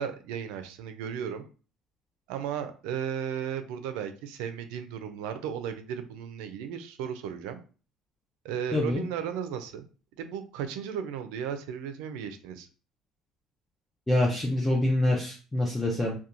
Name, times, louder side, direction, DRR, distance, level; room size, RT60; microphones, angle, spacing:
voice 1, 0.0-1.4 2.3-7.6 8.4-9.8 10.2-12.7, right 8 dB, 85° right, 8 dB, 0.4 m, -35 dB
voice 2, 8.7-9.0 14.1-16.2, left 1 dB, 5° left, -2 dB, 0.4 m, -25 dB
2.8 x 2.2 x 2.4 m, 0.37 s
cardioid pair, 155°, 0 cm